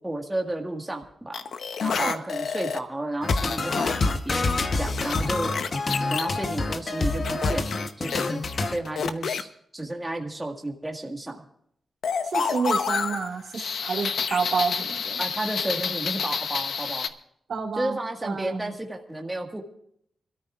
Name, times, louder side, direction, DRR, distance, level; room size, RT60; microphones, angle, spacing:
voice 1, 0.0-1.4 1.8-4.5 4.8-5.5 6.1-11.4 15.2-17.1 17.7-19.6, right 1 dB, 10° right, 1 dB, 1.7 m, -32 dB
sound 1, 1.3-2.8 3.3-4.1 4.5-6.3 7.2-9.4 12.0-17.1, left 6 dB, 85° left, 0.9 m, -29 dB
sound 2, 3.2-8.8, left 3 dB, 40° left, 1.0 m, -27 dB
voice 2, 12.3-15.2 17.5-18.6, right 5 dB, 75° right, 1 dB, 2.0 m, -29 dB
26.0 x 13.5 x 2.5 m, 0.69 s
wide cardioid pair, 150°, 0 cm